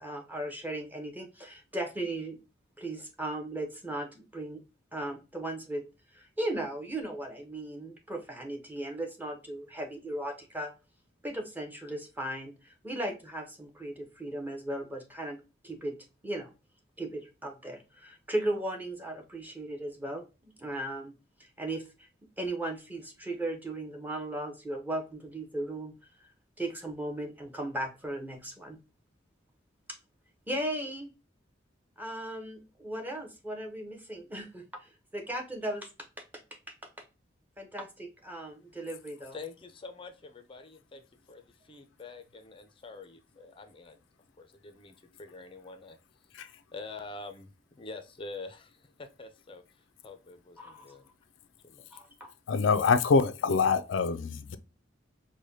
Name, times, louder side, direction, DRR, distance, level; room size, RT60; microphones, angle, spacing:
voice 1, 0.0-2.4 2.8-4.6 4.9-5.8 6.1-10.7 11.2-15.4 15.6-16.0 16.2-16.5 17.0-21.1 21.4-22.1 22.4-25.9 26.6-28.8 30.5-31.1 32.0-35.9 37.6-39.4 50.6-50.8 51.9-52.3, right 1 dB, 10° right, 0.8 m, -37 dB
voice 2, 39.3-44.0 44.4-46.0 46.4-49.6 50.0-51.1 51.6-52.0, left 3 dB, 30° left, 0.5 m, -46 dB
voice 3, 52.5-54.6, left 5 dB, 85° left, 0.4 m, -25 dB
4.7 x 2.2 x 2.6 m
head